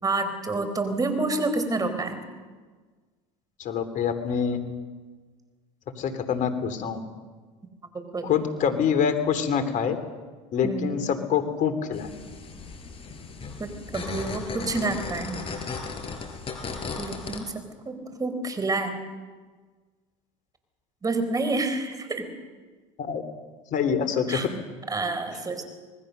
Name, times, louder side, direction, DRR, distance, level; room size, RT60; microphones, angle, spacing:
voice 1, 0.0-2.2 7.9-8.3 10.6-11.0 13.6-15.4 17.0-18.9 21.0-22.3 24.3-24.5 24.9-25.6, right 3 dB, 20° right, 8 dB, 4.2 m, -28 dB
voice 2, 3.6-4.6 6.0-7.0 8.2-10.0 10.5-12.1 23.0-23.2 23.7-24.5, left 7 dB, 50° left, 9 dB, 3.2 m, -25 dB
sound 1, 11.9-17.4, left 4 dB, 35° left, 4.4 m, -36 dB
25.5 x 20.0 x 6.7 m, 1.4 s
supercardioid pair, 90°, 16 cm